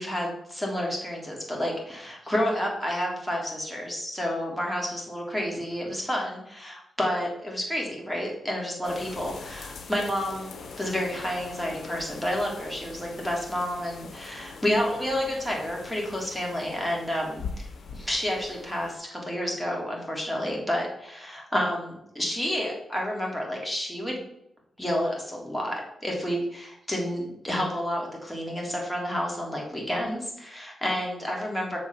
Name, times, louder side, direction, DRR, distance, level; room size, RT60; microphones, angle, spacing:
voice 1, 0.0-10.5 10.8-17.7 17.9-24.2 24.8-31.8, equal, 5° left, -2 dB, 3.2 m, -30 dB
sound 1, 8.8-19.0, left 4 dB, 65° left, 1.2 m, -42 dB
7.1 x 4.7 x 5.7 m, 0.77 s
supercardioid pair, 55°, 0 cm